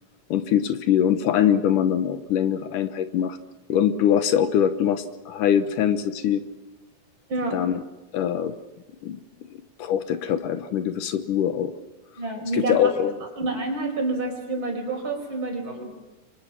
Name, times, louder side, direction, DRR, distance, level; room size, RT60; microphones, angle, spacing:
voice 1, 0.3-3.4 3.7-6.4 7.5-7.8 8.1-8.5 9.0-9.2 9.8-11.7 12.5-13.2, left 9 dB, 70° left, 10 dB, 2.5 m, -23 dB
voice 2, 12.2-12.8 13.4-15.9, right 2 dB, 35° right, 2 dB, 5.7 m, -28 dB
29.5 x 25.0 x 6.0 m, 1.1 s
omnidirectional pair, 4.1 m